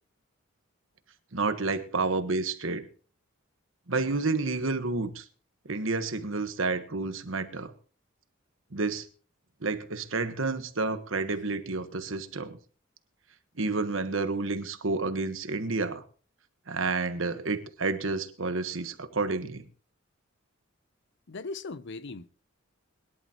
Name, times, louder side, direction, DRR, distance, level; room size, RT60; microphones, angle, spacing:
voice 1, 1.3-2.9 3.9-5.2 5.7-7.7 8.7-9.1 9.6-12.6 13.6-16.0 16.7-19.6, right 3 dB, 70° right, 1.3 m, -30 dB
voice 2, 21.3-22.3, left 3 dB, 60° left, 0.7 m, -38 dB
22.0 x 11.0 x 3.0 m
head